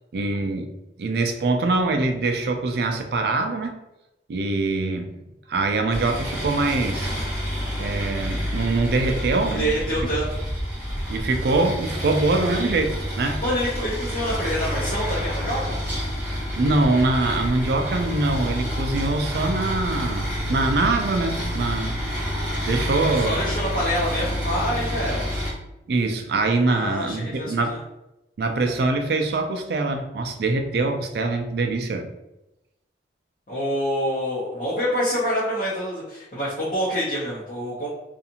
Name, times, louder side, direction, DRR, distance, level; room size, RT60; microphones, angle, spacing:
voice 1, 0.1-0.7 1.0-3.7 4.3-5.1 5.5-7.1 7.8-9.7 11.1-13.4 16.6-21.9 22.7-23.3 25.9-27.8 28.4-32.1, right 3 dB, 60° right, 5 dB, 0.4 m, -23 dB
sound 1, 5.9-25.5, equal, 10° right, 0.8 m, -28 dB
voice 2, 9.4-10.3 13.4-15.7 23.1-25.2 26.7-27.8 33.5-37.9, equal, 45° left, -8 dB, 0.7 m, -26 dB
2.5 x 2.4 x 2.8 m, 0.93 s
head